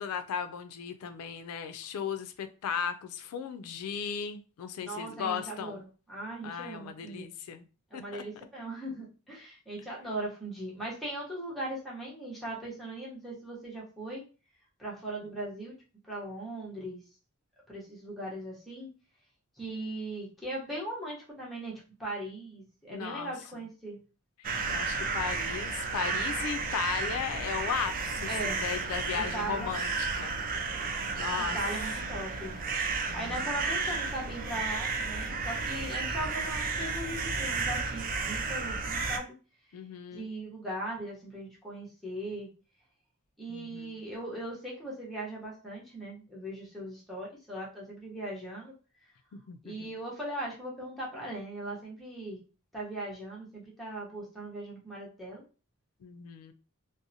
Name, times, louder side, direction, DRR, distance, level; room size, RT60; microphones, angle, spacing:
voice 1, 0.0-5.8 6.4-7.6 7.9-8.2 22.9-23.3 24.4-30.4 30.6-31.6 33.1-33.5 39.7-40.3 43.5-44.0 49.3-49.9 56.0-56.5, left 7 dB, 85° left, 0.3 m, -36 dB
voice 2, 4.8-7.3 7.9-14.2 14.8-15.8 16.1-17.0 17.7-18.9 19.6-24.0 28.3-28.6 29.1-29.7 31.5-32.5 32.8-39.3 40.1-42.5 43.4-48.7 49.6-52.4 52.7-55.4, right 1 dB, ahead, 0.8 m, -39 dB
sound 1, 24.4-39.2, right 4 dB, 40° right, 0.3 m, -32 dB
2.7 x 2.0 x 2.6 m
head